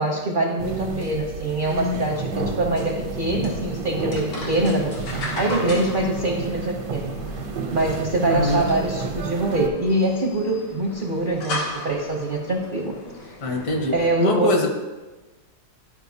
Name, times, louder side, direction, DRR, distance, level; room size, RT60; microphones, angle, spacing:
voice 1, 0.0-5.0 5.4-7.1 7.7-13.3 13.9-14.6, right 2 dB, 55° right, 0 dB, 0.6 m, -24 dB
sound 1, 0.6-9.7, right 3 dB, 80° right, 1.3 m, -30 dB
sound 2, 3.3-14.1, left 2 dB, 90° left, 2.0 m, -37 dB
voice 2, 8.2-8.6 13.4-13.9 14.2-14.7, left 1 dB, 65° left, 2 dB, 1.5 m, -22 dB
11.5 x 5.0 x 2.7 m, 1.2 s
omnidirectional pair, 1.8 m